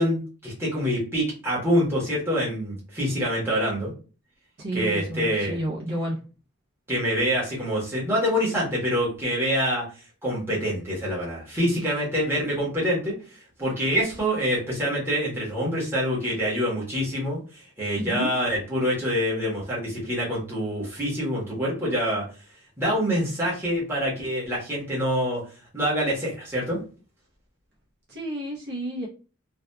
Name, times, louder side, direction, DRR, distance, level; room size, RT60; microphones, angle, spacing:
voice 1, 0.0-3.9 4.7-5.6 6.9-9.8 10.2-13.2 13.6-22.2 22.8-25.4 25.7-26.8, equal, 10° right, -7 dB, 1.0 m, -26 dB
voice 2, 4.6-6.2 18.0-18.3 28.1-29.1, right 1 dB, 50° right, -5 dB, 0.7 m, -30 dB
2.7 x 2.4 x 2.2 m, 0.36 s
head